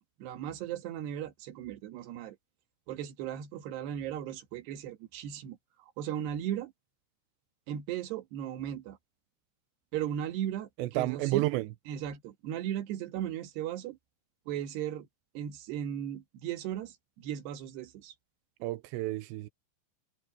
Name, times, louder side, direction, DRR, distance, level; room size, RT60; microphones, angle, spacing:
voice 1, 0.2-2.4 2.9-5.6 6.0-6.7 7.7-9.0 9.9-11.5 11.9-14.0 14.5-15.1 15.4-18.1, right 10 dB, 65° right, 3.4 m, -37 dB
voice 2, 10.8-11.7 18.6-19.5, right 17 dB, 85° right, 2.5 m, -30 dB
omnidirectional pair, 5.9 m